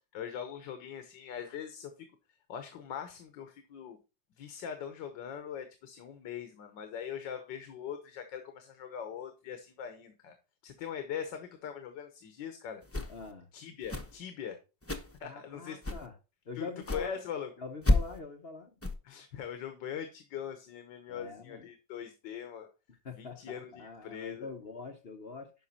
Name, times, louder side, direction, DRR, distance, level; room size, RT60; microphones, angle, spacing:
voice 1, 0.1-1.9 2.5-4.0 4.4-10.3 10.6-12.8 13.5-14.6 15.2-15.8 16.6-17.5 19.1-22.7 23.2-24.5, left 8 dB, 75° left, 1.7 m, -41 dB
sound 1, 12.8-13.3 13.8-14.2 14.8-15.2 15.8-16.1 16.8-17.1 17.8-18.2 18.8-18.9, left 2 dB, 15° left, 0.4 m, -30 dB
voice 2, 13.1-13.5 15.2-16.1 16.5-17.2 17.6-18.7 21.1-21.7 23.0-25.5, left 4 dB, 45° left, 0.8 m, -44 dB
11.5 x 5.1 x 4.2 m
omnidirectional pair, 2.0 m